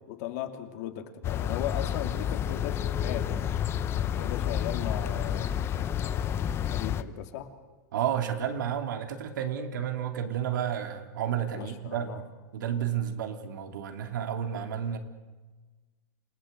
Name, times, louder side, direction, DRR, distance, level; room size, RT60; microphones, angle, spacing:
voice 1, 0.1-7.5 11.5-12.2, left 11 dB, 55° left, 6 dB, 2.8 m, -38 dB
sound 1, 1.2-7.0, left 9 dB, 25° left, 0.8 m, -30 dB
voice 2, 7.9-12.1 12.5-15.0, right 9 dB, 85° right, 5 dB, 2.8 m, -31 dB
28.0 x 18.5 x 8.1 m, 1.3 s
supercardioid pair, 150°, 10 cm